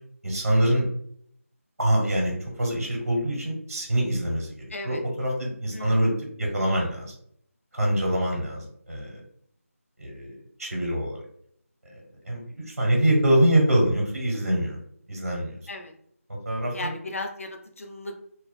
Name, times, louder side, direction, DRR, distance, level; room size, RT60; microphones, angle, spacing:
voice 1, 0.2-0.9 1.8-7.1 7.7-9.2 10.0-11.2 11.9-14.8 15.1-15.6 16.4-16.9, right 1 dB, 75° right, -2 dB, 1.3 m, -25 dB
voice 2, 4.7-5.0 5.7-6.0 15.7-15.9 16.7-18.1, left 2 dB, 65° left, 3 dB, 0.5 m, -36 dB
2.4 x 2.4 x 2.3 m, 0.66 s
figure-of-eight pair, 170°, 8 cm